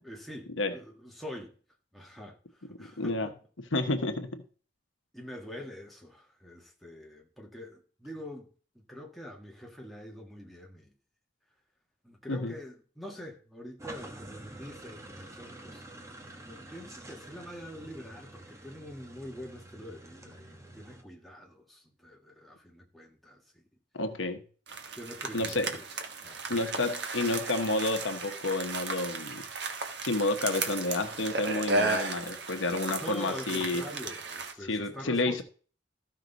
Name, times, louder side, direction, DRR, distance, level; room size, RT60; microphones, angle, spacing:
voice 1, 0.0-1.6 1.9-3.3 5.1-8.5 8.7-10.9 12.0-15.8 16.5-23.6 25.0-26.7 33.0-35.4, equal, ahead, 1.6 m, -45 dB
voice 2, 3.0-3.3 3.7-4.3 12.3-12.5 23.9-24.4 25.3-25.7 26.5-29.4 30.0-33.8 34.7-35.4, left 2 dB, 80° left, 1.1 m, -30 dB
sound 1, 13.8-21.0, right 1 dB, 15° right, 1.2 m, -48 dB
sound 2, 24.7-34.5, right 3 dB, 60° right, 1.3 m, -35 dB
14.0 x 5.7 x 4.0 m
head